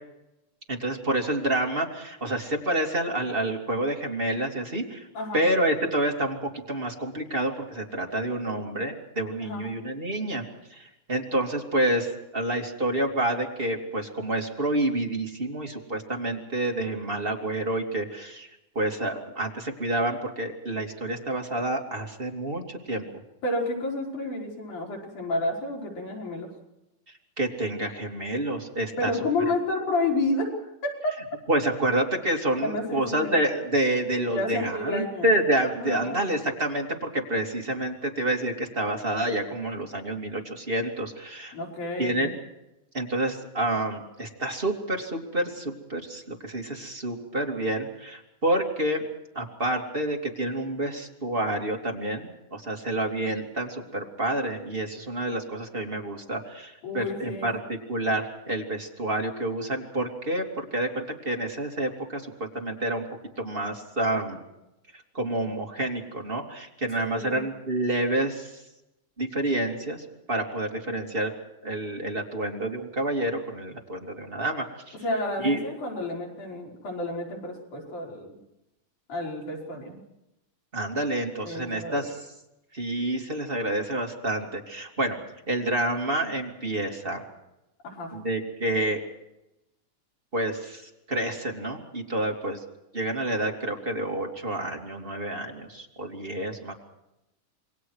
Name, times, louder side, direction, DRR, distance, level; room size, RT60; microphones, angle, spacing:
voice 1, 0.7-5.1 5.3-10.4 10.7-18.5 18.7-23.0 27.4-29.1 31.5-41.5 42.0-42.3 42.9-49.0 49.3-63.0 63.4-64.4 64.9-68.6 69.2-71.3 71.6-75.0 75.4-75.6 80.7-82.2 82.7-85.2 85.5-87.2 88.1-89.0 90.3-90.8 91.1-92.6 92.9-96.7, right 1 dB, 20° right, 1 dB, 2.7 m, -28 dB
voice 2, 23.4-26.5 29.0-31.4 32.6-33.3 34.3-35.3 35.8-36.2 41.5-42.3 56.8-57.5 67.0-67.4 75.0-78.4 79.1-80.0 81.4-82.1 87.8-88.1, left 2 dB, 75° left, -2 dB, 6.8 m, -30 dB
28.0 x 22.5 x 4.8 m, 0.90 s
omnidirectional pair, 3.6 m